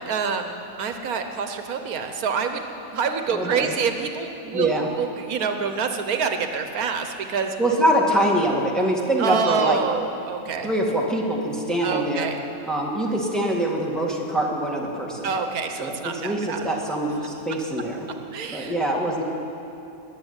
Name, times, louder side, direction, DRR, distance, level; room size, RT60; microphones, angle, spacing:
voice 1, 0.1-2.6 2.9-7.6 9.2-10.7 11.8-12.4 15.2-16.6 18.3-18.7, right 6 dB, 80° right, 6 dB, 1.4 m, -27 dB
voice 2, 3.3-3.7 4.5-4.9 7.6-9.8 10.6-12.3 12.7-15.3 15.8-18.1 18.5-19.2, right 1 dB, ahead, -2 dB, 1.9 m, -24 dB
19.5 x 7.5 x 9.8 m, 2.9 s
omnidirectional pair, 1.5 m